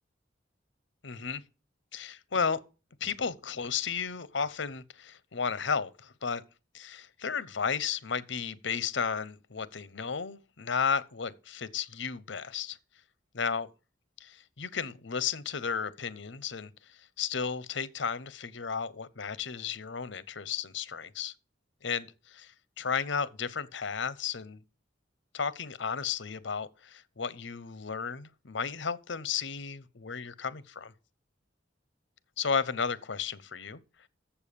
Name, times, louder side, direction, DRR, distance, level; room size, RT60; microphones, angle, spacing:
voice 1, 1.0-1.4 1.9-2.6 3.0-6.4 6.7-12.8 13.3-13.7 14.2-16.7 17.2-21.3 21.8-24.6 25.3-30.9 32.4-33.8, left 6 dB, 70° left, 0.8 m, -33 dB
7.3 x 7.0 x 6.9 m
head